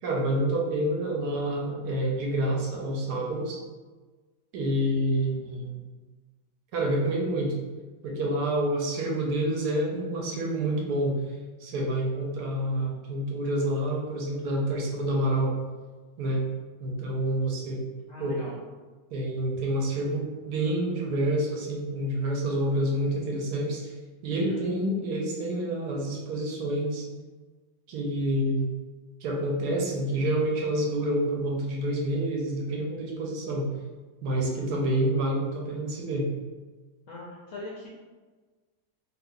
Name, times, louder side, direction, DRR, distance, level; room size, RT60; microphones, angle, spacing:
voice 1, 0.0-3.6 4.5-5.8 6.7-7.6 8.0-11.2 11.6-15.5 16.2-16.4 16.8-17.8 18.2-18.4 19.1-23.9 24.2-27.1 27.9-28.7 29.2-33.7 34.2-36.3, right 1 dB, 70° right, -1 dB, 1.0 m, -28 dB
voice 2, 18.1-18.5 24.3-24.6 37.1-37.9, left 2 dB, 70° left, -5 dB, 0.8 m, -41 dB
2.9 x 2.4 x 3.5 m, 1.3 s
omnidirectional pair, 1.9 m